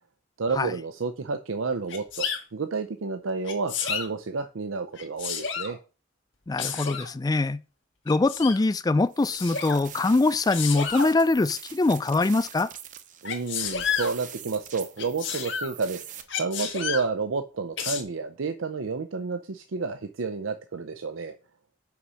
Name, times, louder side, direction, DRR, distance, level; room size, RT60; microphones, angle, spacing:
voice 1, 0.4-5.8 13.2-16.0 16.4-21.3, right 4 dB, 85° right, 0.6 m, -30 dB
Sneeze, 1.9-2.4 3.4-4.1 4.9-5.7 6.6-7.1 8.1-8.6 9.3-9.8 10.5-11.1 13.3-14.1 15.0-15.7 16.3-17.1 17.8-18.0, left 7 dB, 65° left, 1.6 m, -30 dB
voice 2, 6.5-7.6 8.1-12.7, left 3 dB, 20° left, 0.3 m, -23 dB
sound 1, 9.1-16.2, right 9 dB, 40° right, 0.8 m, -44 dB
5.8 x 5.5 x 6.2 m
head